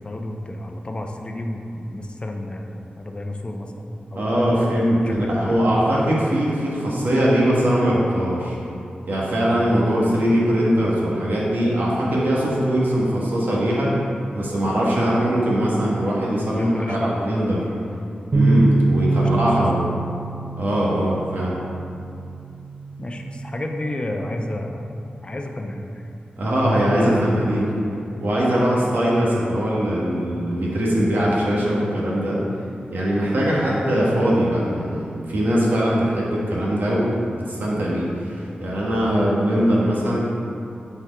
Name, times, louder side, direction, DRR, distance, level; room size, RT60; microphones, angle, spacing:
voice 1, 0.0-4.8 5.0-5.6 9.4-9.6 16.5-17.4 18.4-18.5 19.2-19.7 23.0-24.9 25.2-26.1 26.9-27.8 33.3-33.4, left 1 dB, 30° left, 3 dB, 0.6 m, -31 dB
voice 2, 4.1-8.6 9.1-13.9 14.3-17.6 18.3-19.9 20.6-21.6 26.4-27.7 28.2-32.4 32.9-40.2, equal, 80° right, -5 dB, 1.5 m, -21 dB
sound 1, 18.3-24.6, right 3 dB, 50° right, 0.5 m, -25 dB
8.0 x 4.5 x 3.6 m, 2.6 s
wide cardioid pair, 70°, 3 cm